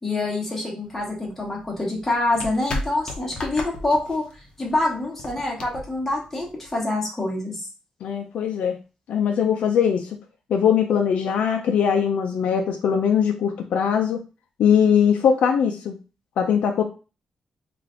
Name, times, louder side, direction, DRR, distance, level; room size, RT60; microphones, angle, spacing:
voice 1, 0.0-4.2 4.6-7.6, left 2 dB, 10° left, -3 dB, 1.3 m, -26 dB
sound 1, 0.9-6.8, left 2 dB, 45° left, 0.7 m, -36 dB
voice 2, 8.0-8.8 9.1-10.1 10.5-14.2 14.6-15.9 16.4-16.8, left 7 dB, 80° left, 2 dB, 0.5 m, -21 dB
3.3 x 2.5 x 3.7 m, 0.32 s
wide cardioid pair, 155°, 2 cm